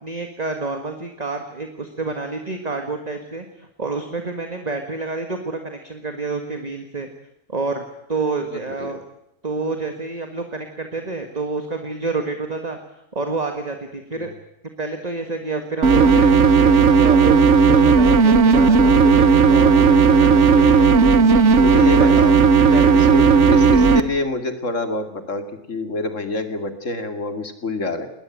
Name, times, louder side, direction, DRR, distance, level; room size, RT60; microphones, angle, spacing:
voice 1, 0.0-7.1 7.5-9.0 9.4-12.8 13.1-14.3 14.8-17.4 17.7-20.3 20.6-20.9 21.3-21.6 22.0-22.2 22.7-23.5, right 3 dB, 35° right, 5 dB, 1.9 m, -28 dB
voice 2, 8.5-8.9 14.2-14.3 21.6-22.4 22.9-28.1, left 2 dB, 80° left, 8 dB, 2.8 m, -27 dB
sound 1, 15.8-24.0, right 5 dB, 70° right, 1.5 m, -13 dB
21.0 x 19.5 x 9.2 m, 0.84 s
omnidirectional pair, 1.3 m